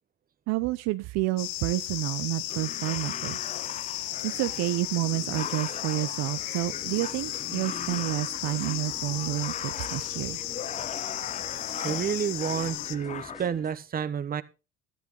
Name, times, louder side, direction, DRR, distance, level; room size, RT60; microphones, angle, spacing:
voice 1, 0.5-3.4 4.2-10.4, right 18 dB, 65° right, 12 dB, 0.7 m, -30 dB
sound 1, 1.4-13.0, left 16 dB, 75° left, 0.9 m, -35 dB
sound 2, 2.5-13.5, left 8 dB, 25° left, 0.5 m, -40 dB
sound 3, 6.6-13.7, right 1 dB, ahead, 3.0 m, -49 dB
voice 2, 11.8-14.4, right 7 dB, 30° right, 12 dB, 1.1 m, -30 dB
13.0 x 10.5 x 3.8 m, 0.30 s
supercardioid pair, 95°, 29 cm